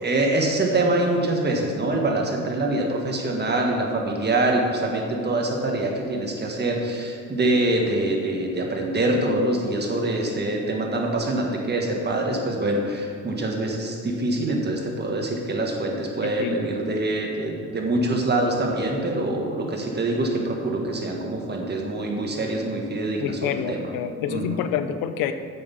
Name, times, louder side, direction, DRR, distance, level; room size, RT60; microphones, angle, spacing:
voice 1, 0.0-23.9 24.3-24.6, right 2 dB, 30° right, 1 dB, 1.6 m, -25 dB
voice 2, 16.2-16.6 23.2-25.3, left 9 dB, 85° left, 10 dB, 0.6 m, -28 dB
7.3 x 6.4 x 5.7 m, 2.3 s
cardioid pair, 90°, 32 cm